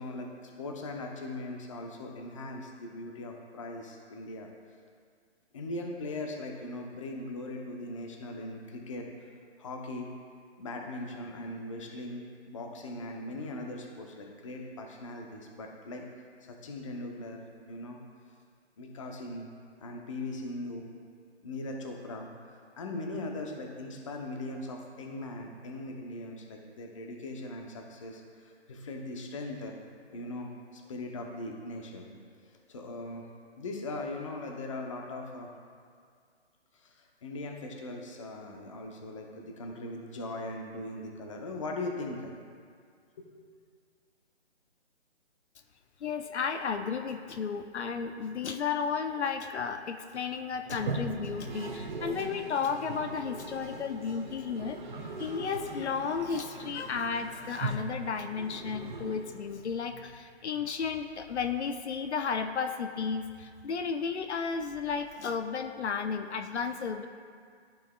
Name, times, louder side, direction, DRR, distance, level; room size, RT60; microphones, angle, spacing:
voice 1, 0.0-4.5 5.5-9.1 9.6-10.1 10.6-16.0 16.5-17.4 17.7-18.0 18.8-19.5 19.8-20.8 21.4-29.7 30.1-32.1 32.4-33.2 33.6-35.5 36.7-42.3 43.2-43.3, left 2 dB, 30° left, 1 dB, 0.7 m, -40 dB
voice 2, 46.0-54.8 55.2-67.1, left 6 dB, 75° left, 7 dB, 0.6 m, -33 dB
Toilet flush, 50.7-59.8, right 3 dB, 45° right, 0.7 m, -40 dB
13.5 x 4.5 x 2.2 m, 2.1 s
hypercardioid pair, 155°, 34 cm